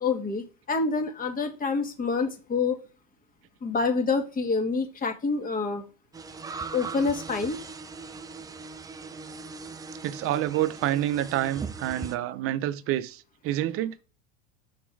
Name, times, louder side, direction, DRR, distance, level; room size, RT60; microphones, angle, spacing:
voice 1, 0.0-2.8 3.6-5.8 6.7-7.6, left 4 dB, 25° left, 1.6 m, -27 dB
sound 1, 6.1-12.2, right 4 dB, 10° right, 0.4 m, -39 dB
voice 2, 10.0-14.0, right 13 dB, 45° right, 0.7 m, -28 dB
6.0 x 4.3 x 4.7 m
supercardioid pair, 120°, 32 cm